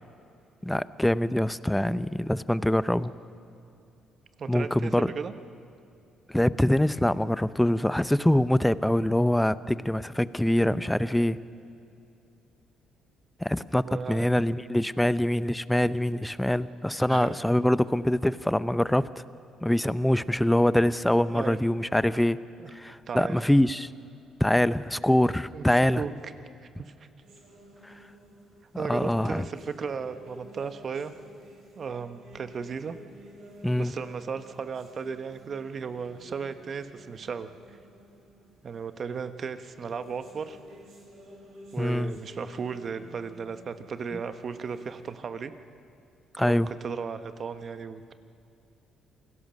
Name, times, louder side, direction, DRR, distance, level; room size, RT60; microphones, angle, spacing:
voice 1, 0.6-3.1 4.5-5.1 6.3-11.4 13.4-19.1 19.6-22.4 22.7-23.9 24.4-26.0 27.8-27.9 28.9-29.5 33.6-33.9 41.8-42.1 46.4-46.7, left 1 dB, 5° left, 16 dB, 0.7 m, -24 dB
voice 2, 4.4-5.3 13.8-14.4 17.1-17.4 21.3-21.6 22.6-22.7 23.1-23.4 25.5-26.1 26.8-26.9 28.8-31.1 31.8-33.0 33.8-37.5 38.6-40.6 41.7-45.5 46.4-48.1, right 6 dB, 50° right, 10 dB, 1.3 m, -35 dB
sound 1, 27.2-45.2, right 1 dB, 70° right, 5.8 m, -51 dB
27.5 x 17.5 x 6.5 m, 2.7 s
supercardioid pair, 60°, 0 cm